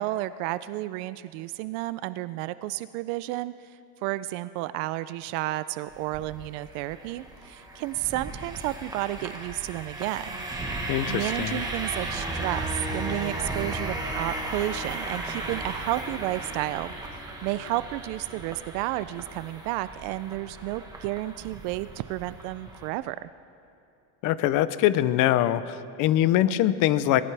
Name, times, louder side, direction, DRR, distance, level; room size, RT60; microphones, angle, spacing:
voice 1, 0.0-3.5 4.0-10.4 11.1-23.3, right 16 dB, 75° right, 15 dB, 0.5 m, -32 dB
sound 1, 5.9-22.9, right 2 dB, 10° right, 1.2 m, -35 dB
voice 2, 10.9-11.6 24.2-27.2, left 13 dB, 45° left, 15 dB, 0.6 m, -23 dB
19.5 x 19.0 x 3.4 m, 2.7 s
cardioid pair, 170°, 43 cm